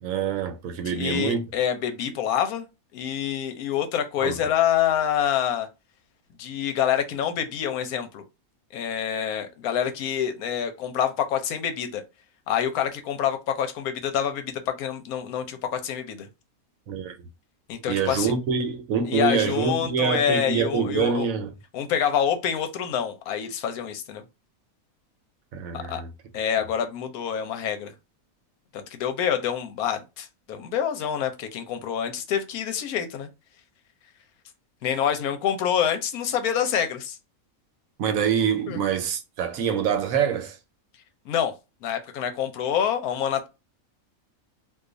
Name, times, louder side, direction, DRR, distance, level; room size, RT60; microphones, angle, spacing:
voice 1, 0.0-1.4 4.2-4.4 16.9-17.2 17.9-21.5 25.5-26.1 38.0-40.6, right 7 dB, 70° right, 1.0 m, -25 dB
voice 2, 0.9-2.7 2.9-5.7 6.4-8.2 8.7-12.0 12.5-16.3 17.7-18.3 19.1-21.3 21.7-24.2 25.9-26.0 26.3-27.9 28.7-33.3 34.8-37.2 38.7-38.8 41.3-41.5 41.8-43.5, left 9 dB, 80° left, 1.1 m, -26 dB
2.5 x 2.4 x 3.8 m
omnidirectional pair, 1.5 m